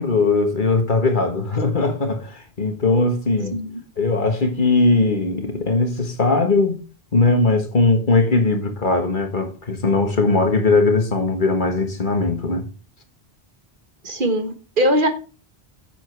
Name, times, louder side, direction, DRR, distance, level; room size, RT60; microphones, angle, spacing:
voice 1, 0.0-3.6 4.0-6.8 7.1-12.6, left 3 dB, 50° left, 1.6 m, -19 dB
voice 2, 3.4-3.8 14.0-15.1, equal, 50° right, 1.6 m, -21 dB
7.8 x 7.7 x 4.6 m
omnidirectional pair, 1.1 m